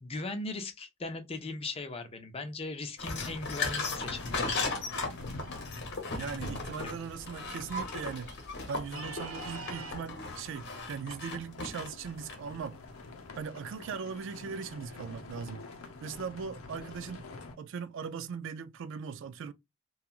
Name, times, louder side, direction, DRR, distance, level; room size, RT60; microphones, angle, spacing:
voice 1, 0.0-4.5 6.8-6.9, left 3 dB, 25° left, 0.5 m, -38 dB
sound 1, 3.0-12.5, left 3 dB, 55° left, 0.9 m, -37 dB
sound 2, 3.1-17.6, left 2 dB, 85° left, 0.6 m, -47 dB
sound 3, 4.8-5.8 7.0-7.1 7.4-9.9, right 3 dB, 75° right, 1.0 m, -47 dB
voice 2, 6.1-8.3 8.7-12.8 13.3-15.7 16.0-17.3 17.6-19.5, right 6 dB, 60° right, 0.3 m, -39 dB
2.9 x 2.3 x 2.3 m
head